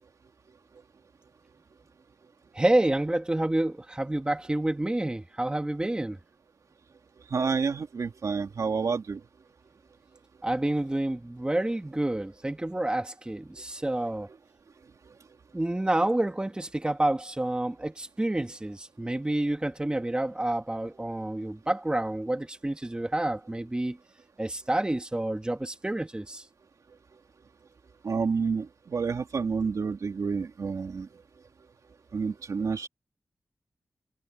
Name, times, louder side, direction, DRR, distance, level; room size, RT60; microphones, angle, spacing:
voice 1, 2.5-6.2 10.4-14.3 15.5-24.0 24.4-26.5, right 1 dB, 15° right, 1.7 m, -28 dB
voice 2, 7.3-9.2 28.0-31.1 32.1-32.9, right 5 dB, 75° right, 2.5 m, -29 dB
wide cardioid pair, 115°, 6 cm